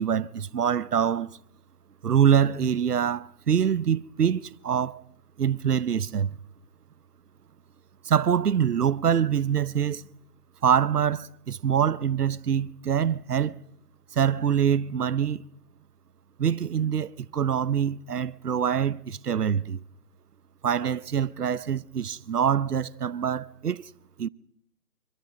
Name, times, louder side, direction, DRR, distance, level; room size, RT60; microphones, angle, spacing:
voice 1, 0.0-1.4 2.0-5.0 5.4-6.3 8.0-10.0 10.6-13.5 14.1-15.5 16.4-19.8 20.6-23.8 24.2-24.3, right 8 dB, 85° right, 0.9 m, -25 dB
25.0 x 23.0 x 5.2 m
hypercardioid pair, 150°, 45 cm